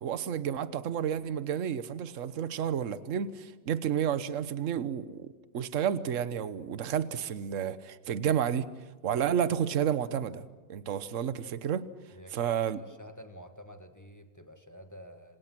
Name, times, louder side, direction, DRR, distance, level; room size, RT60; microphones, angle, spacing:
voice 1, 0.0-5.3 5.5-8.7 9.0-10.4 10.7-11.9 12.3-12.8, right 9 dB, 50° right, 1.3 m, -31 dB
voice 2, 12.1-15.4, equal, 10° left, 1.7 m, -49 dB
28.0 x 26.5 x 6.1 m
omnidirectional pair, 1.9 m